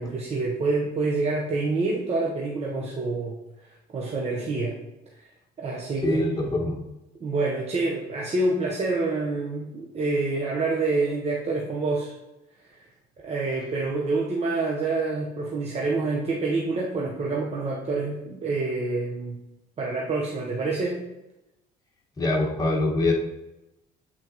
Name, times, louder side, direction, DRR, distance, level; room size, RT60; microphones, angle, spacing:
voice 1, 0.0-3.4 3.9-4.7 5.2-5.3 5.6-6.5 7.2-12.2 13.2-19.4 19.8-21.0, right 3 dB, 40° right, -3 dB, 0.9 m, -27 dB
voice 2, 6.0-6.8 22.2-23.1, left 2 dB, 20° left, -2 dB, 1.6 m, -24 dB
8.0 x 4.1 x 2.9 m, 0.96 s
cardioid pair, 110°, 17 cm